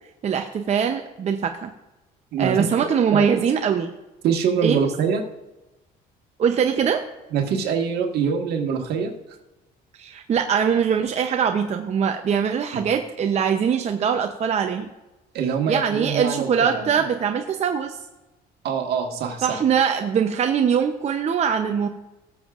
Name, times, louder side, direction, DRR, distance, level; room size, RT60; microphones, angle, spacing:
voice 1, 0.2-1.7 2.4-3.9 4.6-4.9 6.4-7.0 10.0-14.9 15.7-18.0 19.4-21.9, right 7 dB, 40° right, 5 dB, 0.7 m, -22 dB
voice 2, 2.3-3.3 4.2-5.2 7.3-9.1 12.7-12.8 15.3-16.9 18.6-19.6, right 6 dB, 75° right, 3 dB, 1.6 m, -24 dB
19.0 x 7.2 x 2.5 m, 1.0 s
cardioid pair, 110°, 17 cm